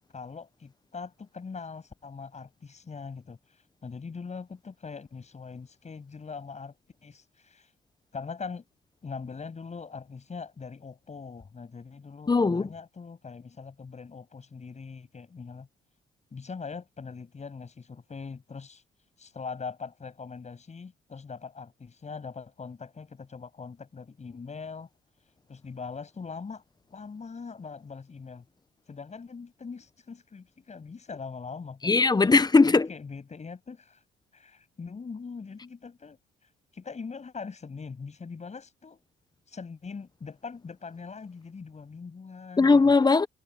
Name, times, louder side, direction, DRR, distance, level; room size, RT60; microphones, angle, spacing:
voice 1, 0.0-6.7 7.0-7.7 8.1-8.6 9.0-15.7 16.3-18.8 19.2-24.9 25.5-26.6 26.9-28.5 28.9-32.0 32.6-34.0 34.3-36.2 36.7-39.0 39.5-42.9, left 5 dB, 35° left, 7.5 m, -41 dB
voice 2, 12.3-12.7 31.8-32.9 42.6-43.3, left 4 dB, 20° left, 0.9 m, -19 dB
cardioid pair, 90°, 20 cm